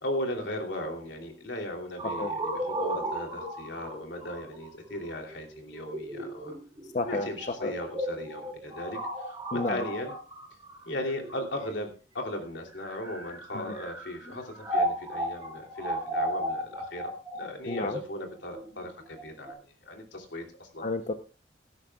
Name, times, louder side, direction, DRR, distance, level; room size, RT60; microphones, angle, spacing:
voice 1, 0.0-6.5 7.1-10.1 10.8-19.6 19.8-20.9, left 1 dB, 85° left, 3 dB, 3.0 m, -37 dB
sound 1, 2.0-11.8 12.6-19.5, right 1 dB, 15° right, 7.3 m, -35 dB
voice 2, 6.9-7.7 9.5-9.8 13.5-13.8 17.7-18.0 20.8-21.1, left 2 dB, 45° left, 8 dB, 0.7 m, -31 dB
17.0 x 13.0 x 2.4 m, 0.34 s
head